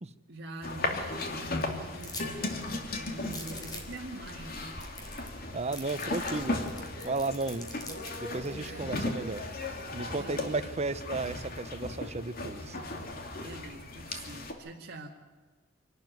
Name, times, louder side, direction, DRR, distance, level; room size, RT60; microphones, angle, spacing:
voice 1, 0.3-4.7 8.6-9.0 10.1-10.8 13.4-15.1, right 2 dB, 55° right, -2 dB, 2.2 m, -45 dB
sound 1, 0.6-14.5, left 2 dB, 50° left, 2.7 m, -36 dB
sound 2, 2.0-2.3 2.6-2.7 3.2-4.0 4.5-4.6 4.8-5.4 5.7-8.2, left 2 dB, 20° left, 3.6 m, -43 dB
voice 2, 5.5-6.7 7.0-7.7 8.2-9.5 9.9-12.8, right 3 dB, 35° right, 11 dB, 0.9 m, -34 dB
26.5 x 12.5 x 9.5 m, 1.4 s
head